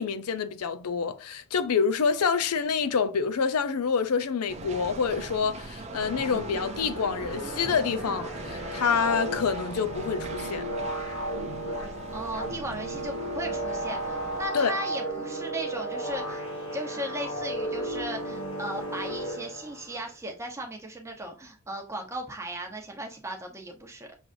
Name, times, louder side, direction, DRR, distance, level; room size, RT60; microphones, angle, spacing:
voice 1, 0.0-10.7 14.5-14.8, left 6 dB, 85° left, 0.5 m, -27 dB
sound 1, 4.5-14.5, right 3 dB, 30° right, 0.5 m, -40 dB
sound 2, 5.9-20.0, right 1 dB, 65° left, 1.6 m, -34 dB
voice 2, 12.1-16.4 16.7-24.2, right 1 dB, 15° right, 0.9 m, -37 dB
6.3 x 3.1 x 2.6 m
head